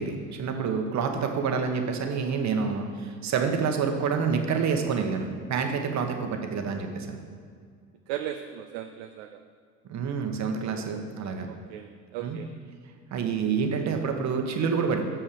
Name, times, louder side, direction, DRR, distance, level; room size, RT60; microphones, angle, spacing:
voice 1, 0.0-7.2 9.9-11.5 12.2-12.4 13.1-15.0, right 5 dB, 35° right, 4 dB, 1.2 m, -28 dB
voice 2, 8.1-9.4 10.6-10.9 11.5-12.5, right 11 dB, 50° right, 6 dB, 0.6 m, -37 dB
7.0 x 5.7 x 6.9 m, 2.1 s
figure-of-eight pair, 65°, 46 cm